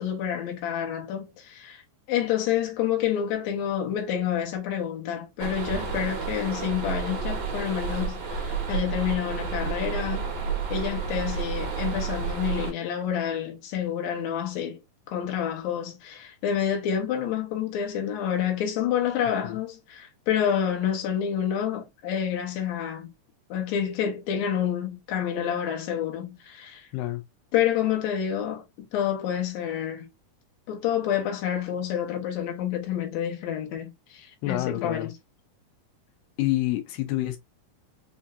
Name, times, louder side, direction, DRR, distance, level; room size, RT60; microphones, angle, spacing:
voice 1, 0.0-1.8 2.1-10.2 10.7-14.8 15.1-23.1 23.5-26.9 27.5-30.1 30.7-35.1, left 9 dB, 65° left, 2.2 m, -28 dB
sound 1, 5.4-12.7, right 5 dB, 65° right, 1.2 m, -30 dB
voice 2, 34.4-35.1 36.4-37.4, left 15 dB, 90° left, 2.4 m, -28 dB
5.5 x 2.7 x 2.3 m
omnidirectional pair, 3.9 m